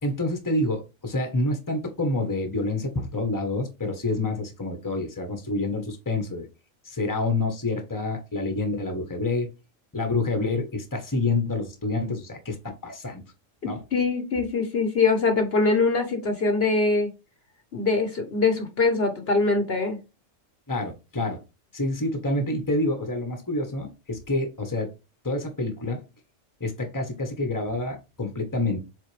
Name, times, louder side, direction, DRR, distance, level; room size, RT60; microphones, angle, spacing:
voice 1, 0.0-6.5 6.8-9.5 9.9-13.2 13.6-13.8 20.7-21.4 21.7-24.9 25.2-26.0 26.6-28.8, left 2 dB, 15° left, 1.3 m, -28 dB
voice 2, 13.9-17.1 17.7-20.0, left 3 dB, 50° left, 1.3 m, -23 dB
7.3 x 3.9 x 3.4 m
omnidirectional pair, 1.3 m